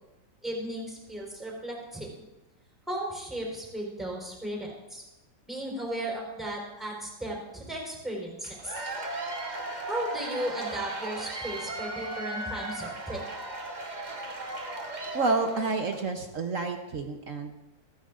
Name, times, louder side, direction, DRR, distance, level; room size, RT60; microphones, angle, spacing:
voice 1, 0.4-2.1 2.9-5.0 5.5-8.7 9.9-13.3, right 1 dB, ahead, -1 dB, 4.2 m, -35 dB
Cheering / Applause / Crowd, 8.4-16.1, right 2 dB, 30° right, 1.1 m, -36 dB
voice 2, 15.1-17.5, right 3 dB, 55° right, 5 dB, 1.0 m, -29 dB
27.0 x 9.5 x 2.5 m, 1.0 s
omnidirectional pair, 2.1 m